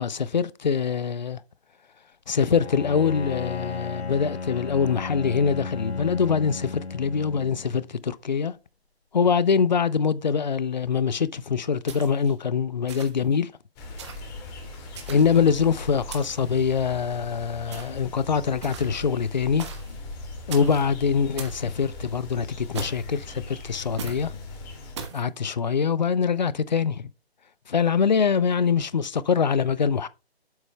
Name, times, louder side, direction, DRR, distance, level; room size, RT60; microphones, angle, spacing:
voice 1, 0.0-1.4 2.3-8.6 9.1-13.5 15.1-19.7 20.5-24.3 25.1-27.1 27.7-30.1, left 6 dB, 45° left, 0.5 m, -24 dB
Bowed string instrument, 2.5-7.9, left 4 dB, 75° left, 0.8 m, -34 dB
sound 1, 11.9-12.3 12.9-13.3 14.0-14.3 14.9-15.5 16.1-16.5 17.7-18.1 18.6-19.1 19.6-20.0 20.5-20.9 21.4-21.7 22.7-23.2 24.0-24.3 25.0-25.2, right 6 dB, 25° right, 1.2 m, -39 dB
sound 2, 13.8-25.0, left 2 dB, 20° left, 2.4 m, -40 dB
8.9 x 8.0 x 2.2 m
figure-of-eight pair, 140°, 32 cm